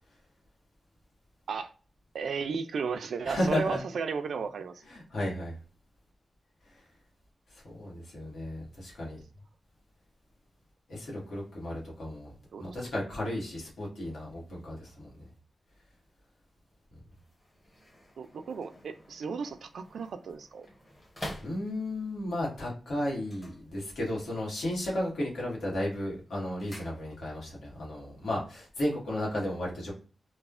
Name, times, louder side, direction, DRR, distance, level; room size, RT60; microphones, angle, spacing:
voice 1, 2.1-4.8 12.5-12.8 18.2-20.7, right 5 dB, 85° right, 0.3 m, -34 dB
voice 2, 3.2-3.8 4.9-5.5 6.7-6.8 7.5-9.2 10.9-12.3 12.6-15.3 21.4-29.9, left 1 dB, 85° left, 1.1 m, -34 dB
sound 1, 17.1-22.1 23.2-24.3 24.6-25.1 25.5-27.5 27.8-27.9, left 1 dB, 20° left, 0.7 m, -48 dB
3.1 x 2.1 x 2.3 m
wide cardioid pair, 150°, 0 cm